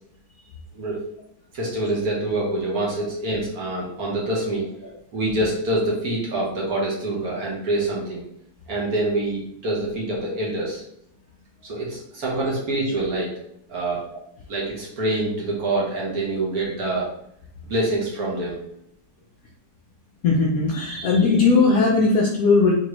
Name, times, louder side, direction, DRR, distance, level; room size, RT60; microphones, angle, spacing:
voice 1, 1.5-4.7 5.1-8.2 8.7-10.8 11.6-13.3 13.7-14.0 14.5-17.1 17.6-18.6, right 2 dB, 55° right, -3 dB, 1.3 m, -25 dB
voice 2, 20.2-22.7, left 4 dB, 70° left, -1 dB, 0.8 m, -18 dB
3.9 x 3.0 x 3.0 m, 0.73 s
omnidirectional pair, 2.0 m